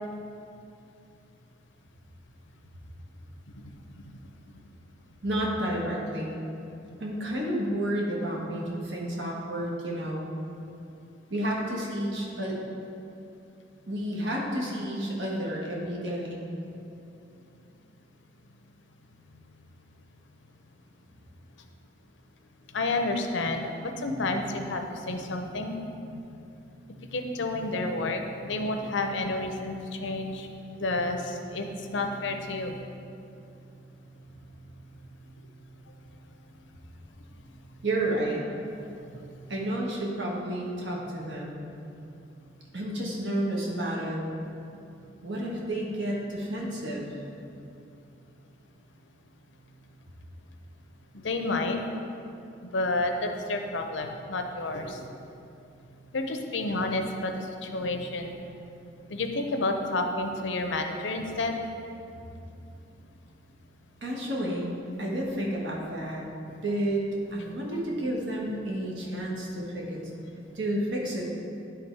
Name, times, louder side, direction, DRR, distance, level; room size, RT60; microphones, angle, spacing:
voice 1, 5.2-6.4 7.0-10.3 11.3-12.6 13.9-16.4 37.8-38.4 39.5-41.6 42.7-44.2 45.2-47.1 64.0-64.7 65.0-66.3 66.6-70.0 70.5-71.3, right 1 dB, 70° right, -3 dB, 1.3 m, -31 dB
voice 2, 22.7-25.8 26.1-26.2 27.1-30.5 30.8-31.7 31.9-32.8 51.1-51.8 52.7-55.1 56.1-58.4 59.1-61.6, left 2 dB, 80° left, 5 dB, 0.6 m, -30 dB
10.0 x 3.4 x 4.6 m, 2.7 s
head